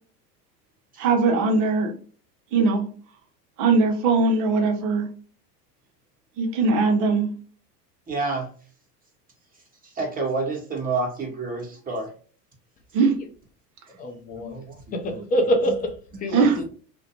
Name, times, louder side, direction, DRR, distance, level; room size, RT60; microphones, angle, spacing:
voice 1, 1.0-1.9 2.5-2.8 3.6-5.1 6.4-7.3 12.9-13.1 16.3-16.6, right 4 dB, 40° right, 0.7 m, -20 dB
voice 2, 8.1-8.5 10.0-12.1 14.4-14.6 15.1-15.2, right 3 dB, 15° right, 1.1 m, -28 dB
voice 3, 14.0-14.6 14.9-16.7, equal, 20° left, 0.4 m, -26 dB
2.4 x 2.2 x 2.8 m
hypercardioid pair, 80°, 48 cm